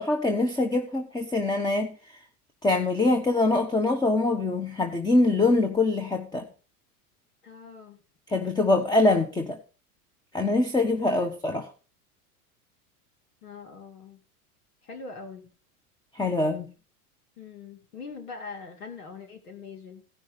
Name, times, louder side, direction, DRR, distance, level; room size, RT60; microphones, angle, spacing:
voice 1, 0.0-1.9 2.6-6.4 8.3-9.6 10.3-11.7 16.1-16.7, left 2 dB, 10° left, 6 dB, 1.4 m, -24 dB
voice 2, 7.4-8.0 11.2-11.3 13.4-14.2 14.8-15.5 17.4-20.0, left 4 dB, 85° left, 4 dB, 2.7 m, -42 dB
16.5 x 6.2 x 5.4 m, 0.37 s
hypercardioid pair, 100°, 44 cm